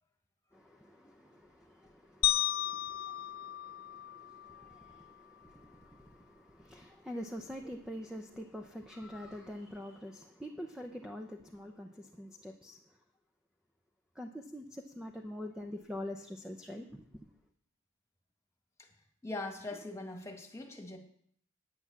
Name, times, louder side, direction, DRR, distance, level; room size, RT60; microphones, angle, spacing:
voice 1, 0.5-12.8 14.2-17.0, left 1 dB, 5° right, 3 dB, 0.7 m, -45 dB
sound 1, 2.2-4.6, left 13 dB, 45° left, 0.7 m, -33 dB
voice 2, 19.2-21.0, left 2 dB, 15° left, 3 dB, 1.8 m, -42 dB
9.5 x 9.5 x 7.2 m, 0.66 s
head